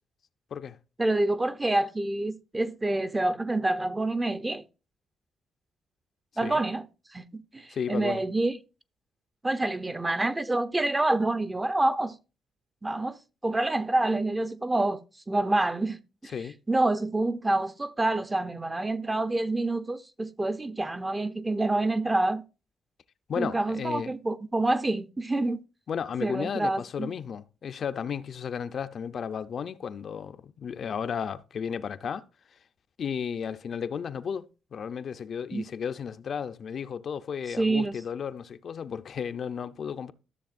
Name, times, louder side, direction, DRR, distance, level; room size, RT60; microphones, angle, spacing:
voice 1, 1.0-4.6 6.4-6.9 7.1-8.6 9.4-12.2 12.8-13.2 13.4-15.0 15.3-16.3 16.7-22.4 23.4-25.6 26.2-27.1 35.5-35.6 37.5-38.0, right 2 dB, 15° right, 0.6 m, -27 dB
voice 2, 7.7-8.2 16.3-16.5 23.3-24.1 25.9-32.2 33.0-34.4 34.7-40.1, left 7 dB, 55° left, 0.5 m, -33 dB
13.0 x 6.7 x 2.5 m
cardioid pair, 90°, 0 cm